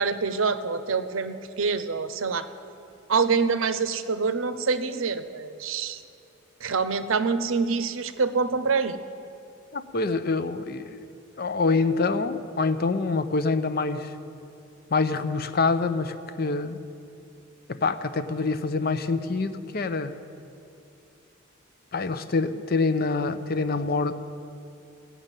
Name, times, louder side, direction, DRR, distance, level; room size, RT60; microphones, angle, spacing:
voice 1, 0.0-2.5 3.1-6.0 6.6-9.0, right 5 dB, 85° right, 11 dB, 0.7 m, -26 dB
voice 2, 9.7-11.1 11.4-14.2 14.9-16.8 17.7-20.2 21.9-24.2, left 3 dB, 50° left, 11 dB, 0.6 m, -26 dB
16.5 x 6.6 x 9.0 m, 2.7 s
head